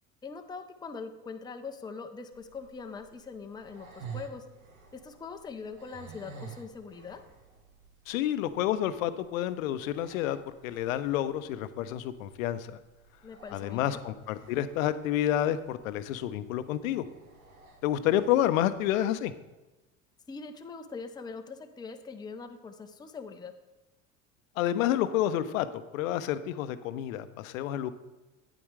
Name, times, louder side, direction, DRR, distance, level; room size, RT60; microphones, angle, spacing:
voice 1, 0.2-4.4 4.9-7.2 13.2-14.0 20.3-23.5, left 4 dB, 10° left, 6 dB, 0.6 m, -42 dB
sound 1, 2.3-19.3, right 6 dB, 90° right, 1.2 m, -52 dB
voice 2, 8.1-12.8 13.5-17.1 17.8-19.3 24.6-27.9, left 12 dB, 75° left, 12 dB, 0.7 m, -29 dB
8.7 x 8.6 x 3.2 m, 1.1 s
hypercardioid pair, 80°, 41 cm